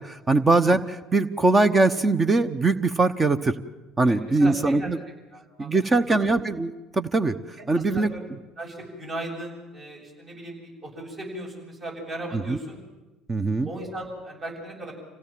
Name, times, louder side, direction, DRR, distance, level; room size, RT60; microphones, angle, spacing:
voice 1, 0.0-3.5 4.0-5.0 5.6-7.3 7.7-8.1 12.3-12.6 13.3-13.7, right 3 dB, 25° right, 10 dB, 1.0 m, -22 dB
voice 2, 4.0-4.9 5.3-5.7 6.0-6.3 7.6-8.2 8.6-12.8 13.6-14.9, right 1 dB, 45° right, 0 dB, 7.8 m, -37 dB
26.0 x 17.0 x 7.5 m, 1.1 s
hypercardioid pair, 60°, 0 cm